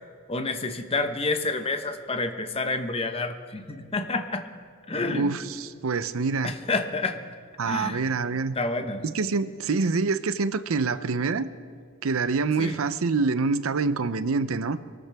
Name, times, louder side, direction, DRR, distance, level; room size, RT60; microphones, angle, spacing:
voice 1, 0.3-4.5 4.9-5.3 6.4-7.2 7.6-8.0 8.6-9.0 12.6-12.8, left 3 dB, 30° left, 0.9 m, -29 dB
voice 2, 5.1-6.5 7.6-8.6 9.0-11.5 12.0-14.8, right 4 dB, 80° right, 0.6 m, -26 dB
24.0 x 13.5 x 3.5 m
head